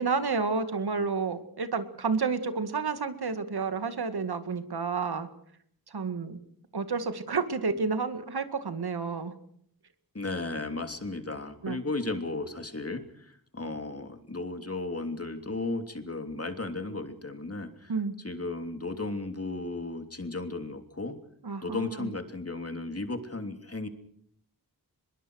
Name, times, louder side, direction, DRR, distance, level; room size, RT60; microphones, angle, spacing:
voice 1, 0.0-5.3 5.9-6.4 6.7-9.3 11.6-11.8 17.9-18.2 21.4-22.1, right 4 dB, 90° right, 10 dB, 2.1 m, -30 dB
voice 2, 10.1-21.2 21.6-23.9, left 2 dB, 40° left, 7 dB, 3.2 m, -35 dB
23.0 x 22.0 x 6.4 m, 0.68 s
cardioid pair, 45°, 37 cm